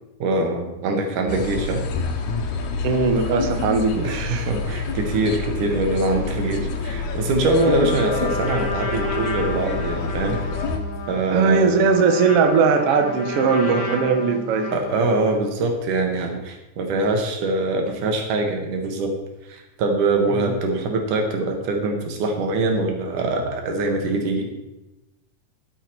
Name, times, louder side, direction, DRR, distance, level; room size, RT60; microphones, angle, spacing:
voice 1, 0.2-1.8 4.0-10.4 11.1-11.8 14.7-19.1 19.5-24.5, right 2 dB, 90° right, 3 dB, 3.0 m, -23 dB
sound 1, 1.3-10.8, left 4 dB, 75° left, 2.4 m, -28 dB
voice 2, 2.8-4.5 11.3-14.7 20.3-20.5, right 5 dB, 65° right, 6 dB, 1.6 m, -19 dB
Trumpet, 7.4-15.5, left 3 dB, 40° left, 1.5 m, -32 dB
12.5 x 7.0 x 4.5 m, 1.0 s
omnidirectional pair, 3.5 m